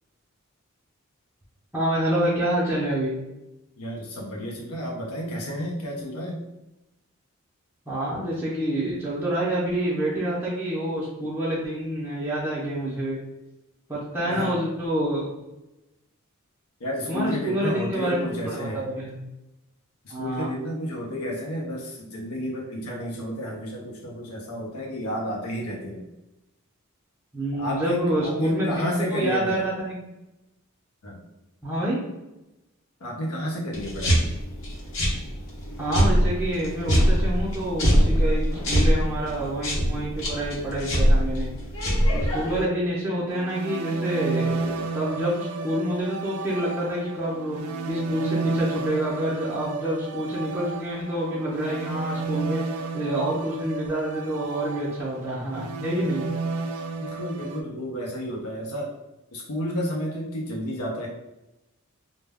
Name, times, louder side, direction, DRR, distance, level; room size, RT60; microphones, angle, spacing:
voice 1, 1.7-3.2 7.9-13.2 13.9-15.3 17.1-19.3 20.1-20.5 27.3-28.9 29.1-30.0 31.6-32.0 35.8-41.5 42.1-56.3, right 1 dB, 10° right, -8 dB, 0.5 m, -27 dB
voice 2, 3.8-6.4 14.2-14.5 16.8-18.8 20.0-26.0 27.5-29.7 31.0-31.2 33.0-34.2 57.0-58.9 59.3-61.1, equal, 90° left, -1 dB, 0.6 m, -31 dB
sound 1, 33.7-42.6, equal, 60° left, 0.8 m, -23 dB
sound 2, 43.3-57.6, right 4 dB, 85° right, 0.3 m, -32 dB
2.2 x 2.0 x 3.4 m, 0.96 s
head